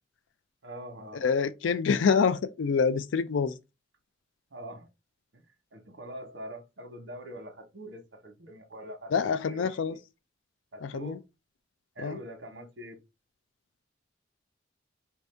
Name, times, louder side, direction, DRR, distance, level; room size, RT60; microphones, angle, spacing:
voice 1, 0.6-1.2 4.5-4.9 5.3-5.4 5.7-10.0 10.7-11.2 11.9-13.0, right 1 dB, 70° right, 1.1 m, -44 dB
voice 2, 1.2-3.6 9.1-9.9 10.8-11.2 12.0-12.2, left 6 dB, 90° left, 0.4 m, -26 dB
4.5 x 2.7 x 3.3 m
head